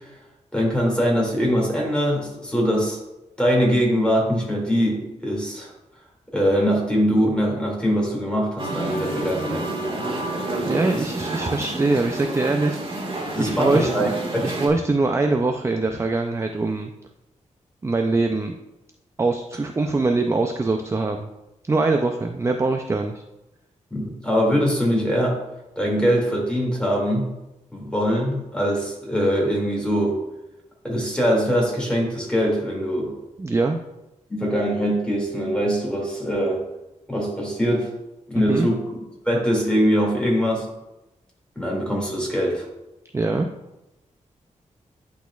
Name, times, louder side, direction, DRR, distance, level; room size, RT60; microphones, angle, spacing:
voice 1, 0.5-3.0 3.4-5.7 6.3-9.7 13.3-14.5 23.9-25.4 25.8-27.3 27.7-30.2 30.8-33.1 34.3-36.6 37.1-37.9 38.3-38.8 39.3-40.7 41.6-42.7, equal, 5° left, -2 dB, 2.2 m, -22 dB
Musical instrument, 8.6-14.7, right 2 dB, 40° right, 1.6 m, -29 dB
voice 2, 10.6-12.8 13.4-14.1 14.4-16.9 17.8-18.5 19.2-21.3 21.6-23.2 33.0-33.1 33.4-33.8 38.4-38.7 43.1-43.5, right 3 dB, 20° right, 4 dB, 0.4 m, -23 dB
10.5 x 4.1 x 2.3 m, 0.95 s
wide cardioid pair, 95°, 13 cm